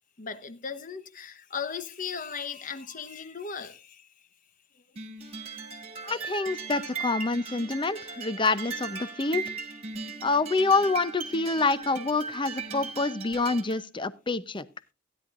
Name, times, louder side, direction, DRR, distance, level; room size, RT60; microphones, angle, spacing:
voice 1, 0.2-4.1 10.0-10.2, left 6 dB, 40° left, 1.0 m, -37 dB
sound 1, 5.0-13.8, right 5 dB, 30° right, 2.0 m, -38 dB
voice 2, 6.0-9.5 10.2-14.7, left 3 dB, 25° left, 0.7 m, -27 dB
16.0 x 10.5 x 2.5 m
head